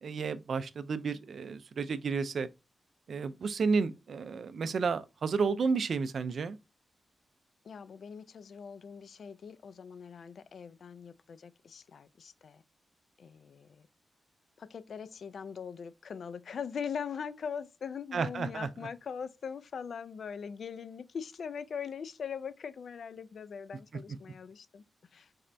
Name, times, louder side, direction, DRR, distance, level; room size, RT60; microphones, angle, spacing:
voice 1, 0.0-2.5 3.1-6.6 18.1-18.7, right 5 dB, 60° right, 0.3 m, -31 dB
voice 2, 7.6-12.6 13.2-13.9 14.6-24.8 25.1-25.3, left 6 dB, 65° left, 0.3 m, -41 dB
4.1 x 3.3 x 2.5 m
wide cardioid pair, 135°, 0 cm